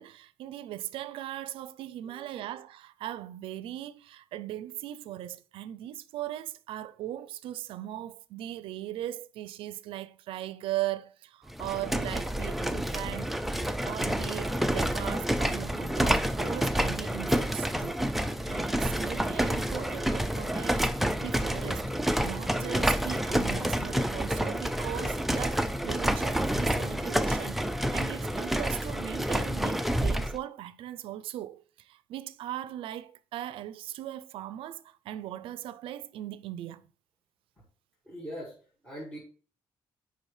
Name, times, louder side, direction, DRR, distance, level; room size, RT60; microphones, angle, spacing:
voice 1, 0.0-20.9 21.2-21.9 22.2-36.8, right 13 dB, 80° right, 0.4 m, -39 dB
sound 1, 11.5-30.4, equal, ahead, 0.3 m, -29 dB
voice 2, 38.1-38.5 38.8-39.2, equal, 15° left, 1.9 m, -40 dB
8.9 x 5.0 x 3.2 m
cardioid pair, 170°, 9 cm